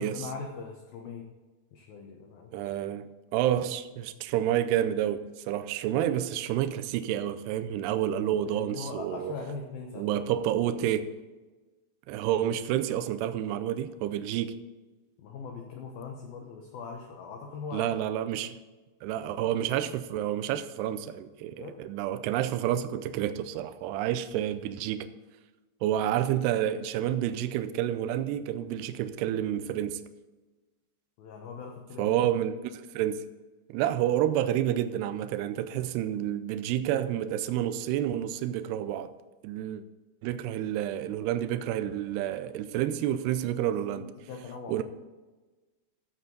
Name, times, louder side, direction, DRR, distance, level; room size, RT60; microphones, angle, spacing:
voice 1, 0.0-1.3 1.7-2.7 7.9-10.8 15.2-18.1 21.6-21.8 31.2-32.2 43.6-44.8, left 4 dB, 70° left, 2.5 m, -41 dB
voice 2, 2.5-9.3 10.0-11.1 12.1-14.6 17.7-18.6 19.0-25.1 25.8-30.0 32.0-33.3 33.7-39.1 39.4-39.8 40.2-44.1 44.7-44.8, right 11 dB, 85° right, 2.5 m, -29 dB
14.0 x 8.0 x 3.9 m
omnidirectional pair, 5.2 m